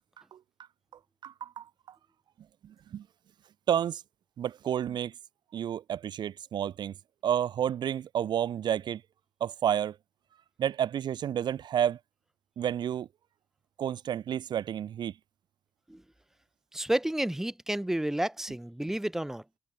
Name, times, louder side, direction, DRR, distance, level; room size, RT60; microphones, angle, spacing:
voice 1, 1.2-1.6 2.9-3.0 3.7-4.0 4.4-5.1 5.5-6.9 7.2-9.0 9.4-10.0 10.6-12.0 12.6-13.1 13.8-15.1, right 10 dB, 65° right, 0.5 m, -30 dB
voice 2, 16.7-19.4, right 1 dB, 5° right, 0.7 m, -31 dB
cardioid pair, 75°, 8 cm